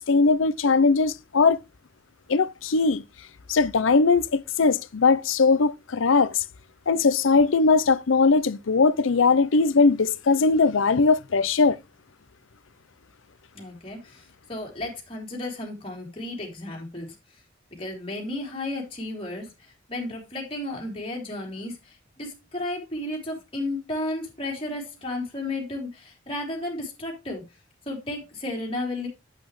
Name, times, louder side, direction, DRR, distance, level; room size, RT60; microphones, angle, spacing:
voice 1, 0.0-1.6 2.3-3.0 3.5-6.4 6.9-11.8, left 4 dB, 75° left, 0.6 m, -20 dB
voice 2, 13.5-17.1 17.8-19.5 19.9-27.4 27.8-29.1, left 2 dB, 30° left, 3.3 m, -33 dB
8.4 x 8.3 x 3.1 m
head